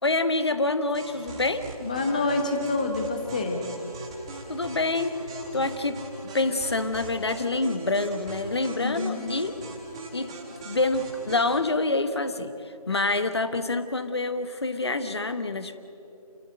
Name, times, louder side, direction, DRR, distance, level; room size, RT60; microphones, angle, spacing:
voice 1, 0.0-1.6 4.5-5.1 5.5-6.0 6.3-9.5 10.1-10.3 10.6-12.5 12.9-15.8, left 2 dB, 45° left, 10 dB, 1.3 m, -26 dB
sound 1, 0.9-11.6, right 2 dB, 10° right, 1.3 m, -40 dB
voice 2, 1.8-3.6 8.8-9.2, left 3 dB, 10° left, 4 dB, 1.1 m, -27 dB
28.5 x 14.5 x 8.0 m, 2.7 s
figure-of-eight pair, 165°, 20 cm